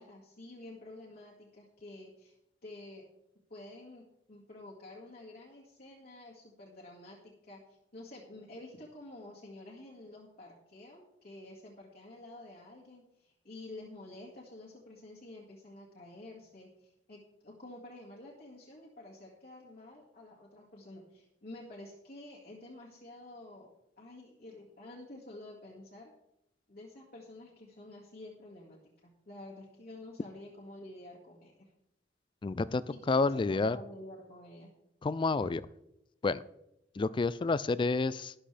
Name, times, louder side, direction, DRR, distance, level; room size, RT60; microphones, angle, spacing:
voice 1, 0.0-2.4 2.6-3.0 3.5-23.7 24.0-26.1 26.7-31.7 32.9-34.7, left 1 dB, 55° left, -4 dB, 2.0 m, -50 dB
voice 2, 32.4-32.8 33.1-33.8 35.0-35.6 36.2-36.4 37.0-38.3, left 3 dB, 25° left, 17 dB, 0.3 m, -29 dB
13.0 x 11.5 x 3.4 m, 0.83 s
head